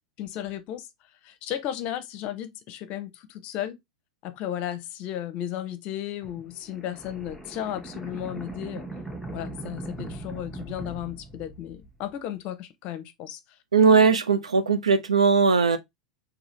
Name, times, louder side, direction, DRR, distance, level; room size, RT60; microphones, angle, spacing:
voice 1, 0.2-0.9 1.2-3.8 4.2-8.8 9.3-13.4, left 11 dB, 40° left, 0.7 m, -34 dB
sound 1, 6.2-12.1, right 2 dB, ahead, 0.9 m, -40 dB
voice 2, 13.7-15.8, right 5 dB, 80° right, 0.6 m, -19 dB
3.8 x 2.9 x 3.1 m
figure-of-eight pair, 90°, 3 cm